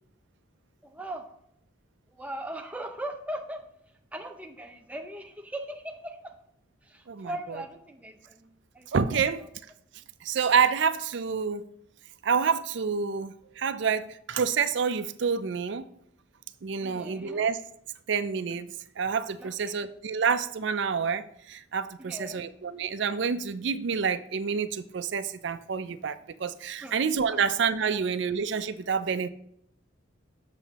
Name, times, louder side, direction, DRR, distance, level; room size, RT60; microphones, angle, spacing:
voice 1, 0.8-1.3 2.1-3.6 4.1-6.4 6.8-9.2 16.8-17.5 19.4-19.8 22.0-22.4 26.8-26.9 27.3-27.4, right 1 dB, 5° right, 0.6 m, -39 dB
voice 2, 8.9-9.4 10.2-11.6 12.2-15.8 16.6-17.6 18.1-29.3, right 6 dB, 60° right, 0.4 m, -28 dB
7.3 x 6.9 x 2.9 m
head